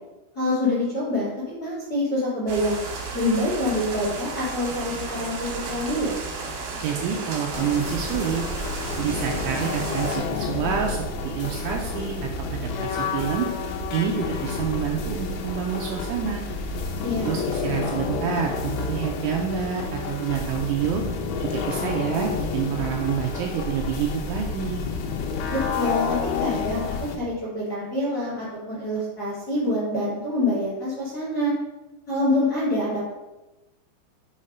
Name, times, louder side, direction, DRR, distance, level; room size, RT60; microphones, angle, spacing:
voice 1, 0.3-2.8 3.1-6.1 17.0-17.3 25.5-26.8 27.1-31.5 32.1-33.1, left 1 dB, 30° left, -9 dB, 1.8 m, -26 dB
sound 1, 2.5-10.2, right 3 dB, 70° right, 2.2 m, -33 dB
voice 2, 6.8-8.4 9.0-13.5 13.9-16.4 17.2-21.0 21.4-24.9, right 8 dB, 85° right, 0 dB, 2.7 m, -28 dB
sound 2, 7.5-27.2, left 4 dB, 80° left, 3.2 m, -30 dB
7.9 x 3.2 x 5.4 m, 1.0 s
omnidirectional pair, 6.0 m